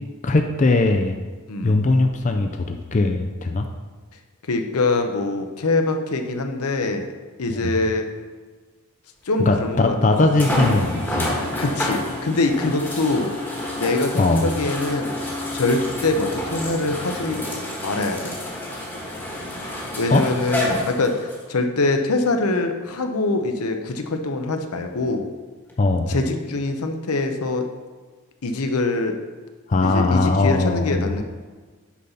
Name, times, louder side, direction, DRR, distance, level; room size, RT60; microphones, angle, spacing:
voice 1, 0.2-1.2 1.6-3.7 7.5-7.8 9.5-11.3 14.2-14.5 20.1-20.2 25.8-26.1 29.7-31.2, left 2 dB, 35° left, 4 dB, 0.4 m, -20 dB
voice 2, 1.5-1.8 4.4-7.1 7.4-8.0 9.2-10.4 11.6-13.3 13.8-17.4 17.8-18.3 20.0-25.3 26.1-27.7 28.4-29.2 29.8-31.2, left 2 dB, 85° left, 5 dB, 0.8 m, -24 dB
sound 1, 9.3-9.4 10.4-21.4 22.2-22.3 25.7-25.8, left 1 dB, 10° left, 1.2 m, -29 dB
Wind instrument woodwind instrument, 10.8-16.8, left 4 dB, 65° right, 1.7 m, -35 dB
8.4 x 4.0 x 5.7 m, 1.4 s
head